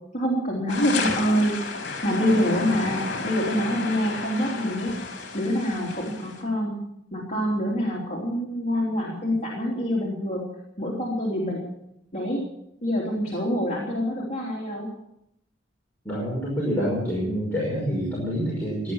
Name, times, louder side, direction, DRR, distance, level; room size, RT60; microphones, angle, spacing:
voice 1, 0.1-1.6 2.0-4.9 5.3-6.8 7.1-10.5 10.8-11.6 12.1-12.4 12.8-14.9, equal, 35° left, -2 dB, 3.3 m, -26 dB
sound 1, 0.7-6.4, left 3 dB, 60° left, 3.7 m, -32 dB
voice 2, 16.0-18.9, equal, 10° left, -5 dB, 5.5 m, -27 dB
17.0 x 11.0 x 7.1 m, 0.81 s
head